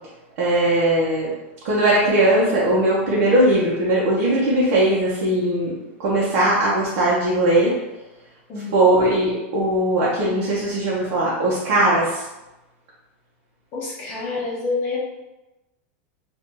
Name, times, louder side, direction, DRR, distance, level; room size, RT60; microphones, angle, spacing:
voice 1, 0.4-1.3 1.6-7.7 8.7-12.2, right 1 dB, 55° right, -7 dB, 1.0 m, -19 dB
voice 2, 13.7-15.0, left 3 dB, 30° left, -5 dB, 0.8 m, -27 dB
2.7 x 2.6 x 3.7 m, 1.0 s
supercardioid pair, 155°, 7 cm